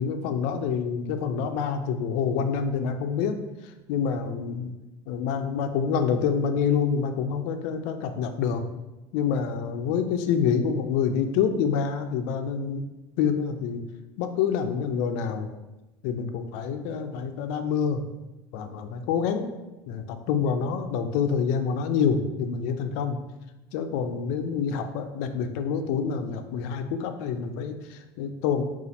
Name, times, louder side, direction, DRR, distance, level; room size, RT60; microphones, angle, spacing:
voice 1, 0.0-3.4 3.9-4.7 5.1-8.6 9.1-12.8 13.2-13.8 14.2-15.5 16.0-18.0 18.5-19.5 19.9-23.2 23.7-28.6, left 6 dB, 60° left, 7 dB, 0.4 m, -27 dB
4.1 x 2.4 x 4.0 m, 1.0 s
cardioid pair, 180°, 10 cm